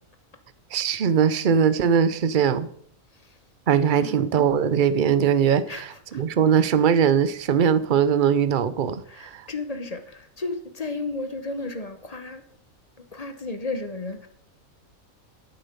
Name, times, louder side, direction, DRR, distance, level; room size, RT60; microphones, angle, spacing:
voice 1, 0.7-2.7 3.7-9.4, right 7 dB, 45° right, 0.7 m, -21 dB
voice 2, 3.9-4.2 5.7-6.2 9.1-12.4 13.1-14.3, left 3 dB, 30° left, 1.1 m, -33 dB
12.5 x 7.7 x 5.3 m
omnidirectional pair, 1.4 m